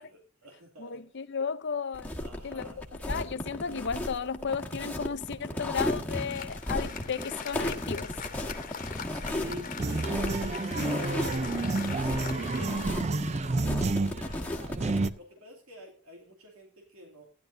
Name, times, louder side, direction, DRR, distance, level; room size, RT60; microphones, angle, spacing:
voice 1, 0.0-1.1 2.2-2.9 5.4-5.6 9.1-10.6 10.9-11.5 12.0-13.2 13.9-14.4 15.2-17.3, equal, 85° right, 2.4 m, -46 dB
voice 2, 0.8-2.1 2.4-2.7 3.1-8.1, left 6 dB, 55° left, 0.7 m, -34 dB
sound 1, 1.9-15.1, left 1 dB, 10° left, 1.3 m, -35 dB
Applause, 5.6-15.4, left 6 dB, 40° left, 1.2 m, -43 dB
sound 2, 9.8-15.1, right 3 dB, 30° right, 0.5 m, -30 dB
15.5 x 10.5 x 2.6 m
head